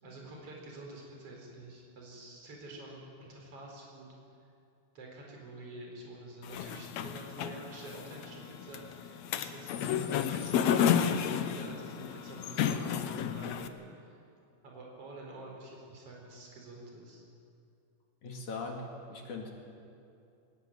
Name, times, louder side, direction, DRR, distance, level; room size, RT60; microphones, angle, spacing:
voice 1, 0.0-4.1 5.0-13.7 14.0-14.2 14.6-17.2, right 2 dB, 40° right, -1 dB, 5.3 m, -47 dB
sound 1, 6.4-13.7, left 8 dB, 85° left, 1.5 m, -32 dB
voice 2, 18.2-19.5, left 3 dB, 55° left, 1 dB, 3.4 m, -40 dB
21.0 x 18.5 x 9.1 m, 2.6 s
omnidirectional pair, 4.4 m